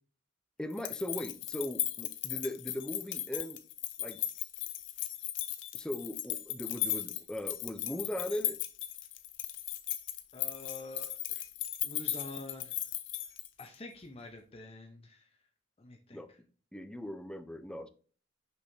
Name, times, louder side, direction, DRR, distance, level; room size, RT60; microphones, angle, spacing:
voice 1, 0.6-3.6 4.0-4.2 5.7-8.6 16.1-16.3 16.7-17.9, left 1 dB, 5° left, 0.6 m, -39 dB
sound 1, 0.7-13.8, left 13 dB, 80° left, 0.8 m, -37 dB
voice 2, 10.3-11.4 11.8-12.8 13.6-15.3 15.8-16.2, left 2 dB, 35° left, 0.9 m, -47 dB
6.3 x 6.1 x 2.7 m
head